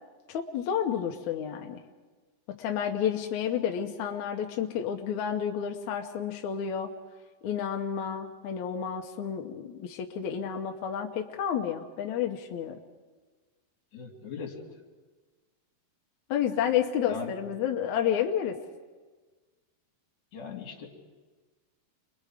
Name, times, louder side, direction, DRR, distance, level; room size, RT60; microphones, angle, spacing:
voice 1, 0.3-1.8 2.5-6.9 7.4-12.8 16.3-18.6, left 9 dB, 75° left, 3 dB, 1.8 m, -30 dB
voice 2, 13.9-14.7 17.1-17.3 20.3-20.9, left 6 dB, 50° left, 0 dB, 3.8 m, -39 dB
29.5 x 22.0 x 5.0 m, 1.4 s
omnidirectional pair, 4.7 m